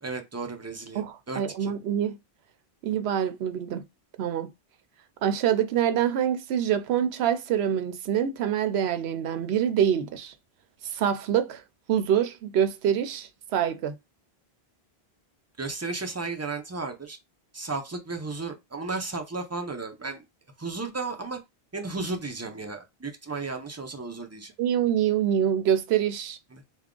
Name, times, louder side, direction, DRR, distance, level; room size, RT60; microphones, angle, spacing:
voice 1, 0.0-1.0 1.3-1.7 15.6-17.2 17.5-20.2 20.6-21.4 21.7-24.5 26.5-26.6, right 3 dB, 20° right, 0.5 m, -34 dB
voice 2, 1.0-2.2 2.8-3.8 4.2-4.5 5.2-10.3 10.9-11.6 11.9-13.9 24.6-26.4, right 9 dB, 80° right, 0.9 m, -25 dB
3.4 x 2.2 x 3.7 m
omnidirectional pair, 1.1 m